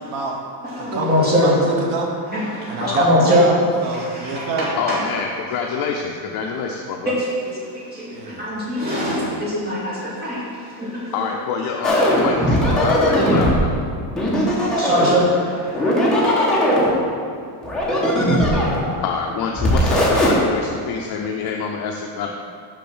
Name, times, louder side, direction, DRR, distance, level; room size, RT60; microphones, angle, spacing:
voice 1, 0.1-0.4 0.8-1.1 1.4-2.1 2.7-4.7 8.1-8.5, right 3 dB, 80° right, 1 dB, 1.5 m, -27 dB
voice 2, 0.6-1.6 2.3-3.5 3.9-5.0 7.1-7.3 7.7-11.1 14.6-16.2, equal, 20° right, -6 dB, 2.3 m, -22 dB
voice 3, 2.8-3.1 4.8-7.2 11.1-13.8 18.5-22.3, left 6 dB, 50° left, 1 dB, 0.6 m, -27 dB
sound 1, 11.8-13.6 14.2-15.2 15.7-16.9 17.6-18.9 19.5-20.3, equal, ahead, 1.3 m, -18 dB
6.8 x 6.2 x 6.1 m, 2.2 s
cardioid pair, 170°, 47 cm